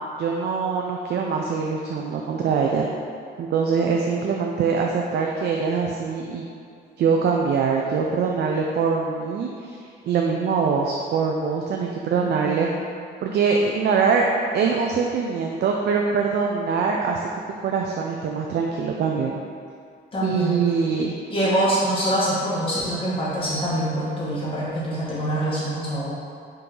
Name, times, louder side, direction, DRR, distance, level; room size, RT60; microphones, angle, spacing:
voice 1, 0.2-2.9 3.4-6.5 7.0-9.8 10.0-12.7 13.2-14.3 14.5-17.3 17.6-19.4 20.2-21.1, right 5 dB, 55° right, 0 dB, 0.4 m, -23 dB
voice 2, 12.2-12.6 20.1-20.6 21.3-26.1, right 1 dB, 25° left, -8 dB, 1.3 m, -25 dB
3.7 x 2.8 x 3.8 m, 2.3 s
cardioid pair, 90°, 20 cm